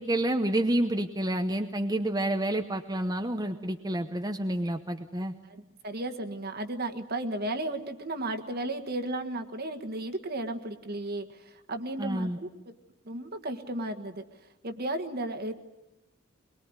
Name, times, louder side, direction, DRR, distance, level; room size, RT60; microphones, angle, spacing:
voice 1, 0.0-5.3 12.0-12.4, right 1 dB, 20° right, 5 dB, 0.9 m, -29 dB
voice 2, 5.5-12.5 13.0-14.2 14.6-15.5, right 1 dB, 50° right, 5 dB, 1.7 m, -34 dB
22.5 x 22.5 x 9.7 m, 0.92 s
head